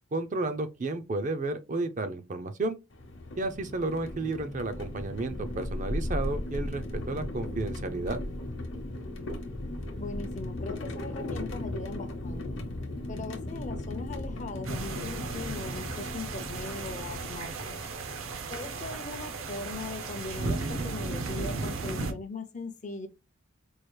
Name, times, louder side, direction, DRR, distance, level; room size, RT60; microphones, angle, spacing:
voice 1, 0.1-2.8 3.4-8.2, right 2 dB, 35° right, 0.4 m, -32 dB
sound 1, 2.9-17.9, left 1 dB, 55° left, 0.9 m, -37 dB
voice 2, 10.0-12.4 13.1-17.9 18.5-23.1, left 3 dB, 35° left, 0.6 m, -40 dB
sound 2, 14.6-22.1, right 3 dB, 70° right, 0.7 m, -35 dB
4.6 x 2.4 x 3.1 m
head